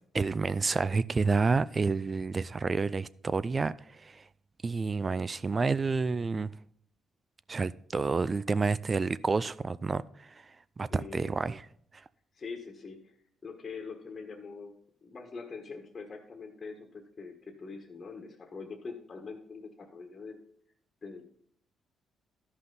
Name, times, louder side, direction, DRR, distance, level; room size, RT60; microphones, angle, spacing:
voice 1, 0.1-4.2 4.6-6.5 7.5-10.3 10.8-11.6, right 4 dB, 30° right, 0.4 m, -29 dB
voice 2, 10.9-11.3 12.3-13.2 13.4-14.7 15.0-20.4 21.0-21.3, left 4 dB, 40° left, 1.5 m, -43 dB
13.5 x 5.6 x 4.0 m
cardioid pair, 95°, 0 cm